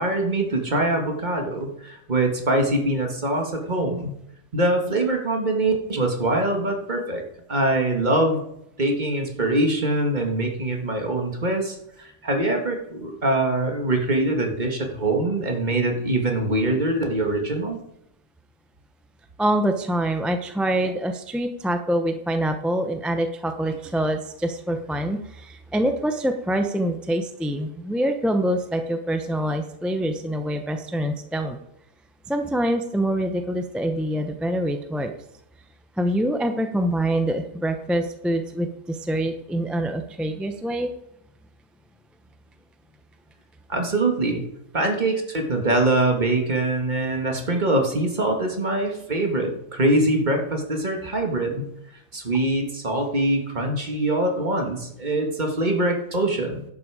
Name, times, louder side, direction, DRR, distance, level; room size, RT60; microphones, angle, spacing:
voice 1, 0.0-4.1 4.5-7.2 7.5-8.4 8.8-17.8 43.7-44.4 44.7-51.7 52.1-56.6, right 2 dB, 35° right, 2 dB, 1.9 m, -23 dB
voice 2, 19.4-31.6 32.3-35.1 36.0-40.9, right 1 dB, ahead, 6 dB, 0.5 m, -25 dB
11.5 x 8.5 x 4.9 m, 0.77 s
omnidirectional pair, 1.4 m